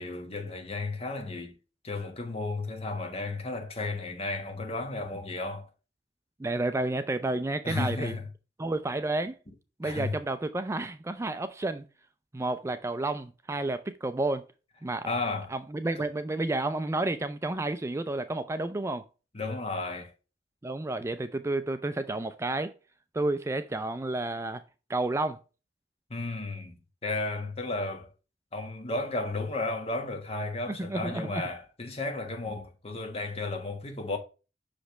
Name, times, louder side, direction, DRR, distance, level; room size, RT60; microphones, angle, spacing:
voice 1, 0.0-1.6 1.8-5.7 7.6-8.3 9.8-10.1 15.1-15.5 19.3-20.1 26.1-26.8 27.0-28.1 28.5-34.2, left 2 dB, 35° left, 1.3 m, -33 dB
voice 2, 6.4-8.2 8.6-9.4 9.8-11.8 12.3-14.4 14.8-15.1 15.5-19.1 20.6-22.7 23.1-24.6 24.9-25.4 30.7-31.4, right 2 dB, 15° right, 0.4 m, -31 dB
6.2 x 5.0 x 3.2 m
head